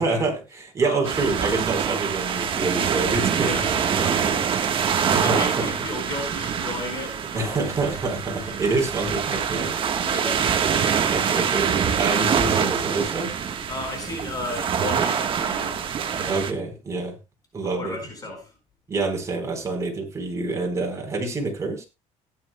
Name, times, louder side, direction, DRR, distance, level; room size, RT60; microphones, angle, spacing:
voice 1, 0.0-3.5 3.9-4.4 4.8-5.6 7.3-9.7 11.1-13.3 16.2-17.2 17.5-18.0 18.9-21.9, right 3 dB, 25° right, 4.3 m, -27 dB
voice 2, 0.8-1.1 3.4-4.4 5.2-8.0 8.4-8.6 9.5-9.7 10.0-11.3 13.7-15.8 16.1-16.4 17.6-18.6, left 2 dB, 30° left, 4.7 m, -35 dB
sound 1, 1.0-16.5, right 7 dB, 40° right, 1.3 m, -25 dB
17.5 x 10.0 x 2.3 m
cardioid pair, 130°, 13 cm